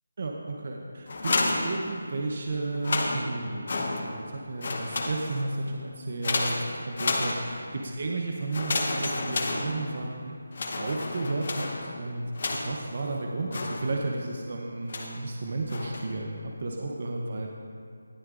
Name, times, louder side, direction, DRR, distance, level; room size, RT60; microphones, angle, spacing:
voice 1, 0.2-10.3 10.8-12.2 12.5-17.5, right 2 dB, 45° right, 0 dB, 0.8 m, -33 dB
sound 1, 1.1-2.3 2.7-4.3 4.6-5.6 6.2-7.8 8.5-10.2 10.5-12.9 13.5-14.2 14.9-15.3 15.7-16.2, left 2 dB, 45° left, 0.9 m, -31 dB
19.0 x 7.7 x 2.5 m, 2.3 s
figure-of-eight pair, 175°, 0 cm